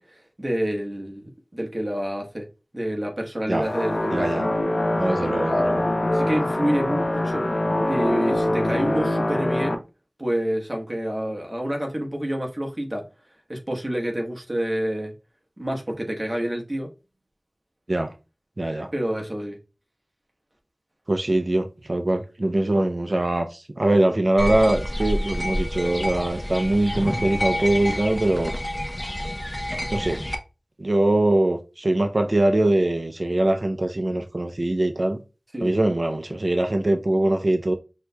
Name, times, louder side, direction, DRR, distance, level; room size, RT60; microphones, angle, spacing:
voice 1, 0.0-2.5 2.7-4.4 6.1-7.5 7.9-9.8 10.2-13.0 13.5-15.1 15.6-16.9 18.9-19.6 35.5-35.7, equal, 40° right, 1.1 m, -28 dB
sound 1, 3.6-9.7, left 1 dB, 80° left, 0.6 m, -24 dB
voice 2, 4.1-4.5 5.0-5.9 17.9-18.1 18.6-18.9 21.1-28.5 29.9-30.2 30.8-35.2 35.6-37.7, right 1 dB, 65° right, 0.4 m, -22 dB
sound 2, 24.4-30.4, left 1 dB, 30° left, 0.7 m, -28 dB
6.1 x 2.7 x 2.2 m
wide cardioid pair, 45°, 0 cm